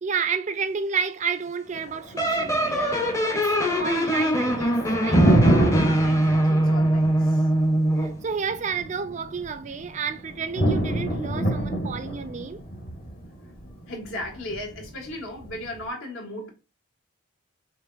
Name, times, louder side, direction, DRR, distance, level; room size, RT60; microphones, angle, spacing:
voice 1, 0.0-5.2 8.0-12.6, right 5 dB, 35° right, 0.3 m, -31 dB
Thunder, 1.7-15.7, right 1 dB, 45° left, 1.3 m, -27 dB
sound 1, 2.2-8.2, right 1 dB, 15° left, 0.6 m, -23 dB
voice 2, 5.9-7.5 13.9-16.5, left 1 dB, 75° left, 1.7 m, -36 dB
6.1 x 2.5 x 2.5 m
head